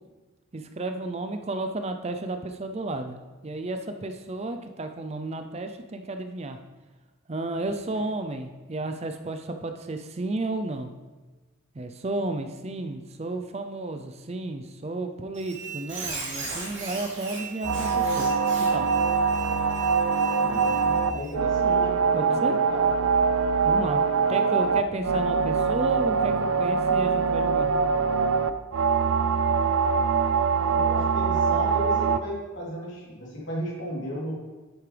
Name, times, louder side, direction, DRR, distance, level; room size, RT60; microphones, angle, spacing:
voice 1, 0.5-3.2 3.4-6.6 7.3-10.9 11.8-18.3 18.7-18.9 22.1-22.6 23.6-24.0 24.3-27.7, right 2 dB, 30° right, 7 dB, 0.5 m, -32 dB
Squeak, 15.3-21.3, right 4 dB, 55° right, 3.2 m, -37 dB
sound 1, 17.6-32.2, right 5 dB, 90° right, 0.5 m, -23 dB
voice 2, 20.4-22.8 30.7-34.3, equal, 60° left, -5 dB, 3.3 m, -34 dB
10.5 x 8.4 x 3.4 m, 1.2 s
head